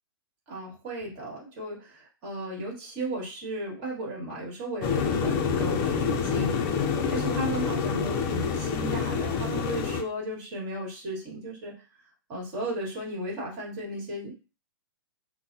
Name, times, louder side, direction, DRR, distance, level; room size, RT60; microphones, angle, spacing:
voice 1, 0.5-6.6 7.1-11.7 12.3-14.3, right 1 dB, 40° right, -3 dB, 1.8 m, -35 dB
sound 1, 4.8-10.0, left 6 dB, 30° left, 0.5 m, -27 dB
3.8 x 2.1 x 2.7 m, 0.33 s
hypercardioid pair, 125°, 13 cm